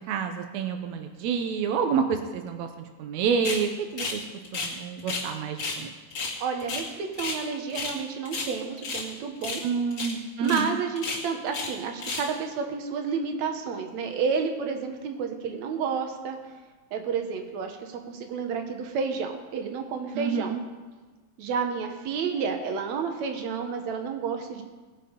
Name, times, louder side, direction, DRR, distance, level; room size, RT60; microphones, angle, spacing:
voice 1, 0.1-4.2 4.5-5.9 9.6-10.8 20.1-20.6, right 6 dB, 80° right, 6 dB, 1.6 m, -28 dB
sound 1, 3.4-3.6 4.0-5.3 5.6-5.8 6.1-7.4 7.7-8.0 8.2-9.1 9.4-9.7 9.9-10.1 10.4-10.6 11.0-11.7 12.0-12.3, left 3 dB, 35° left, 2.7 m, -32 dB
voice 2, 6.4-9.6 10.4-16.4 16.9-20.5 21.4-24.6, right 5 dB, 65° right, 5 dB, 2.1 m, -30 dB
20.0 x 6.8 x 5.2 m, 1.3 s
omnidirectional pair, 4.1 m